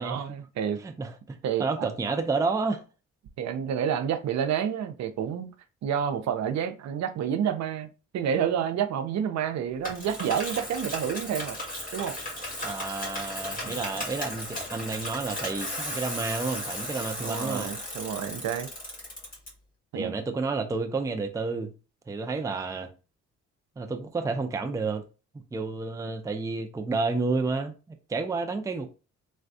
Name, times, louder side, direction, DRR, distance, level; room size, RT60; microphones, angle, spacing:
voice 1, 0.0-0.8 1.4-1.9 3.4-5.5 5.8-7.9 8.1-11.6 11.9-12.2 13.6-13.8 17.2-18.7 19.9-20.1, right 8 dB, 65° right, 0.5 m, -29 dB
voice 2, 0.8-2.8 12.6-17.7 19.9-21.7 22.1-22.9 23.8-25.0 25.5-28.9, right 4 dB, 10° right, 0.4 m, -30 dB
Bicycle, 9.8-19.5, left 1 dB, 30° left, 1.6 m, -35 dB
3.3 x 2.2 x 2.6 m
cardioid pair, 90°, 30 cm